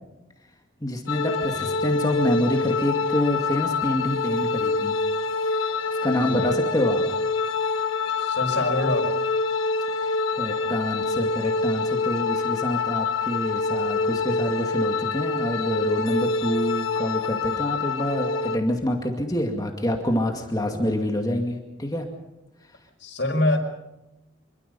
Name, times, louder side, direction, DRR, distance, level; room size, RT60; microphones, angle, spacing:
voice 1, 0.8-5.0 5.5-5.7 6.0-7.0 9.9-22.1, left 1 dB, 20° left, 2 dB, 2.3 m, -27 dB
sound 1, 1.1-18.6, left 4 dB, 85° left, 1.6 m, -26 dB
voice 2, 6.1-6.5 8.1-9.2 20.6-20.8 23.0-23.6, left 1 dB, 60° left, 2 dB, 5.9 m, -26 dB
26.5 x 23.0 x 5.5 m, 0.95 s
head